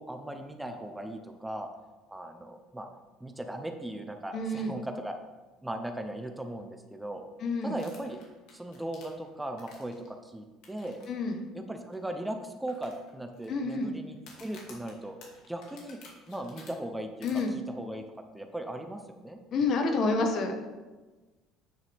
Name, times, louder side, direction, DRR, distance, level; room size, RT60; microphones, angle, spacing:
voice 1, 0.0-1.7 2.1-2.9 3.2-5.2 5.6-7.3 7.6-8.2 8.5-11.0 11.5-15.2 15.5-16.0 16.3-18.0 18.3-19.4, right 1 dB, 5° right, 5 dB, 0.8 m, -38 dB
voice 2, 4.3-4.8 7.4-7.8 11.1-11.4 13.5-13.9 17.2-17.5 19.5-20.7, left 3 dB, 55° left, 4 dB, 1.4 m, -28 dB
sound 1, 7.8-10.1 10.6-11.0 11.3-11.4 11.9-12.0 12.7-13.5 14.2-16.7 17.2-17.4, left 4 dB, 75° left, 2.4 m, -52 dB
9.4 x 6.7 x 3.6 m, 1.2 s
supercardioid pair, 95°, 0 cm